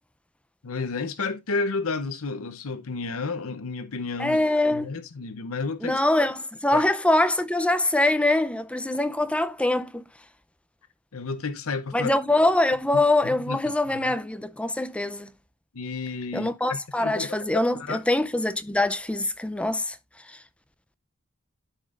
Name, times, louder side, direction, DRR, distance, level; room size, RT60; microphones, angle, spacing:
voice 1, 0.6-4.4 4.7-6.0 6.7-6.8 11.1-12.1 13.2-13.6 13.9-14.1 15.7-18.0, left 4 dB, 80° left, 0.8 m, -31 dB
voice 2, 4.2-4.9 5.8-10.0 11.9-15.3 16.3-20.0, left 2 dB, 5° left, 0.5 m, -24 dB
12.5 x 5.1 x 2.5 m
head